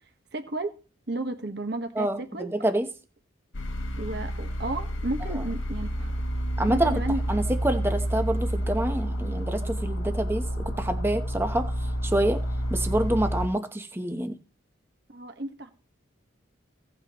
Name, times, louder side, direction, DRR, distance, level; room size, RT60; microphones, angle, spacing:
voice 1, 0.3-0.7 1.1-2.5 4.0-6.1 6.7-7.2 15.1-15.7, right 2 dB, 55° right, 1.3 m, -32 dB
voice 2, 2.0-2.9 5.3-5.4 6.6-7.0 7.3-11.7 12.0-12.4 12.7-14.4, right 1 dB, 10° right, 0.9 m, -27 dB
sound 1, 3.5-13.5, equal, 70° left, 1.1 m, -29 dB
16.5 x 8.8 x 3.0 m
head